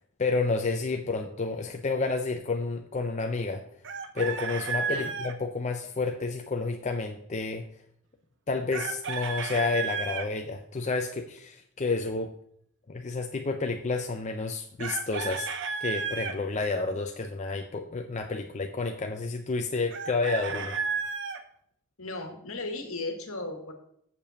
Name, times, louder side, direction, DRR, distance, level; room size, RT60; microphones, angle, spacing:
voice 1, 0.2-3.6 4.1-7.6 8.5-12.3 12.9-15.5 15.8-20.8, left 3 dB, 35° left, 4 dB, 0.5 m, -30 dB
Chicken rooster, 3.8-5.3 8.7-10.3 14.8-16.4 19.9-21.4, right 5 dB, 55° right, 0.8 m, -32 dB
voice 2, 22.0-23.7, left 2 dB, 65° left, 5 dB, 1.6 m, -36 dB
6.9 x 5.2 x 6.9 m, 0.70 s
head